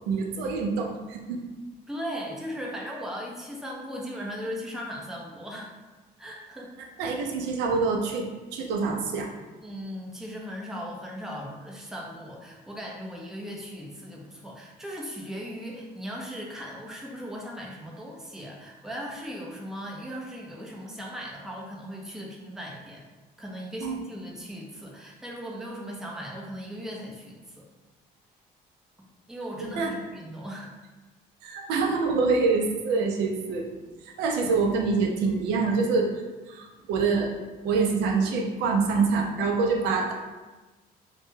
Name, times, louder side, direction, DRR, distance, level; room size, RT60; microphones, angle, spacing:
voice 1, 0.1-1.5 7.0-8.3 8.5-9.3 23.8-24.0 29.6-29.9 31.4-33.7 34.0-37.3 37.6-40.1, right 4 dB, 90° right, 1 dB, 0.4 m, -26 dB
voice 2, 1.9-5.7 6.2-6.7 9.6-23.0 23.4-27.7 29.3-30.7, equal, 5° right, -2 dB, 0.4 m, -38 dB
2.1 x 2.1 x 3.0 m, 1.2 s
cardioid pair, 110°, 17 cm